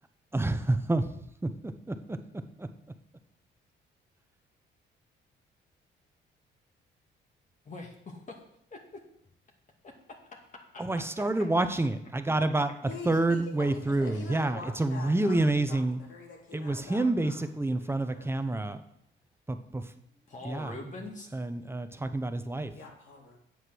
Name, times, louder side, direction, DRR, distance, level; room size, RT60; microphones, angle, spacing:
voice 1, 0.3-2.2 2.6-2.7 10.8-12.7 13.0-16.0 16.5-18.8 19.5-19.9 20.4-20.7 21.3-22.7, right 2 dB, 10° right, 0.9 m, -28 dB
voice 2, 7.7-8.4 8.7-9.0 9.8-11.3 14.1-14.3 20.3-21.3, left 3 dB, 40° left, 2.2 m, -44 dB
voice 3, 12.8-18.6 20.5-20.8 22.0-22.4 22.7-23.4, left 4 dB, 80° left, 3.0 m, -46 dB
8.1 x 8.0 x 6.3 m
cardioid pair, 90°, 20 cm